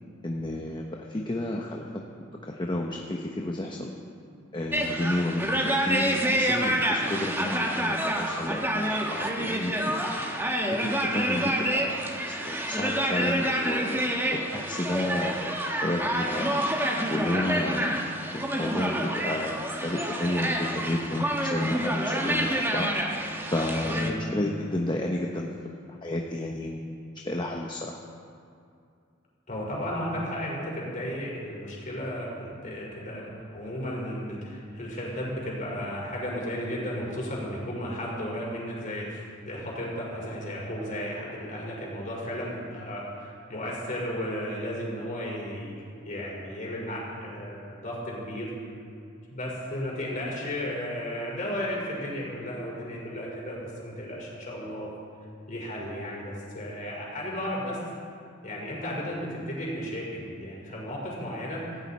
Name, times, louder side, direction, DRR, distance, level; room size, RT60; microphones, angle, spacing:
voice 1, 0.2-2.0 2.4-3.9 4.5-9.7 10.6-16.6 17.1-18.0 18.3-22.9 23.5-25.5 25.9-26.9 27.2-28.0, left 1 dB, 25° left, 0 dB, 0.9 m, -31 dB
sound 1, 4.7-24.1, right 1 dB, 10° right, 1.2 m, -28 dB
voice 2, 23.8-24.2 29.5-45.7 46.0-48.5 49.3-54.9 55.5-57.8 58.4-61.6, equal, 40° left, -4 dB, 4.7 m, -34 dB
17.5 x 15.5 x 4.3 m, 2.4 s
head